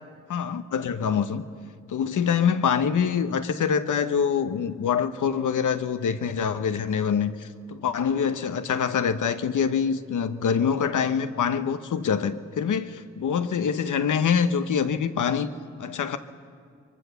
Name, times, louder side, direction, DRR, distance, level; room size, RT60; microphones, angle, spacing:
voice 1, 0.3-1.4 1.9-15.5 15.8-16.2, left 7 dB, 90° left, 0.9 m, -25 dB
23.5 x 21.5 x 6.9 m
cardioid pair, 45°, 30 cm